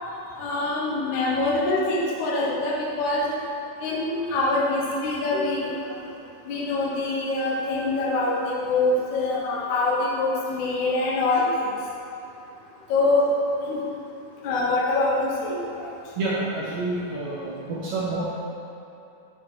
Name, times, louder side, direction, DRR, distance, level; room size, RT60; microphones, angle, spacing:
voice 1, 0.4-3.2 3.8-5.7 6.4-11.7 12.9-13.2 13.6-13.8 14.4-15.9, left 2 dB, 75° left, -5 dB, 1.7 m, -24 dB
voice 2, 16.2-18.4, right 2 dB, 70° right, -8 dB, 2.1 m, -29 dB
7.7 x 4.3 x 4.8 m, 2.8 s
omnidirectional pair, 4.9 m